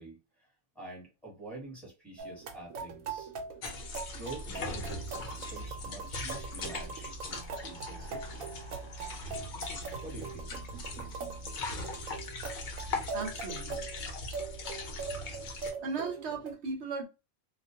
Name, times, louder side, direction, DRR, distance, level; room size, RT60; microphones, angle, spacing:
voice 1, 0.0-3.3 4.2-8.4 9.0-9.2 10.0-10.7, right 2 dB, ahead, 0.9 m, -47 dB
sound 1, 2.2-16.5, right 5 dB, 80° right, 1.0 m, -42 dB
sound 2, 3.6-15.7, left 2 dB, 75° left, 0.4 m, -40 dB
sound 3, 7.2-9.5, left 1 dB, 45° left, 0.9 m, -53 dB
voice 2, 13.1-13.8 15.8-17.1, right 4 dB, 60° right, 0.9 m, -36 dB
2.4 x 2.2 x 2.6 m
omnidirectional pair, 1.4 m